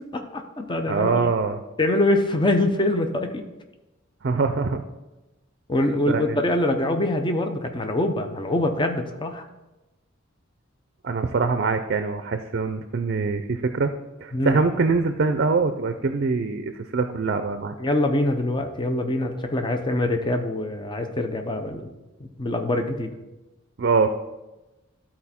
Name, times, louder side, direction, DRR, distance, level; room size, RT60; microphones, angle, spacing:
voice 1, 0.1-1.3 1.8-3.4 5.7-9.5 14.3-14.6 17.8-21.9 22.2-23.1, left 1 dB, 25° left, 6 dB, 0.6 m, -24 dB
voice 2, 0.9-1.6 4.2-4.8 6.1-6.4 11.0-13.9 14.2-17.7 23.8-24.1, right 4 dB, 50° right, 8 dB, 0.4 m, -23 dB
12.5 x 4.3 x 4.2 m, 1.0 s
head